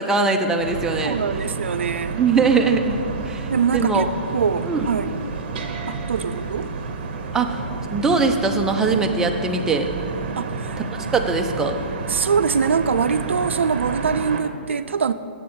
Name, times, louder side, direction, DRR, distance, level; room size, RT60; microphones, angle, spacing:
voice 1, 0.0-1.2 2.2-3.0 3.3-4.1 4.7-4.8 7.3-7.6 7.9-9.9 10.8-11.8, right 4 dB, 10° right, 3 dB, 0.4 m, -21 dB
sound 1, 0.6-14.4, right 4 dB, 50° right, 0.9 m, -30 dB
voice 2, 1.0-2.2 3.5-4.1 4.3-5.1 5.9-6.7 10.4-10.8 12.1-15.1, right 6 dB, 90° right, 11 dB, 0.4 m, -23 dB
7.5 x 7.2 x 4.3 m, 2.4 s
hypercardioid pair, 145°, 6 cm